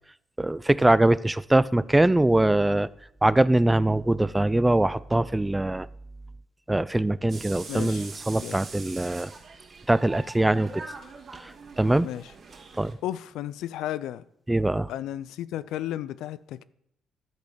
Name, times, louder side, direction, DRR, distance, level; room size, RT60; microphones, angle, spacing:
voice 1, 0.4-2.9 3.2-5.9 6.7-9.3 9.9-10.8 11.4-11.5 11.8-12.1 12.8-13.0 14.5-14.9, right 1 dB, 10° right, 0.3 m, -22 dB
sound 1, 7.3-12.9, right 4 dB, 55° right, 2.3 m, -43 dB
voice 2, 7.7-8.1 8.4-8.6 12.0-12.3 13.0-14.2 14.9-16.6, left 12 dB, 85° left, 0.3 m, -33 dB
11.5 x 4.1 x 6.6 m
cardioid pair, 80°, 0 cm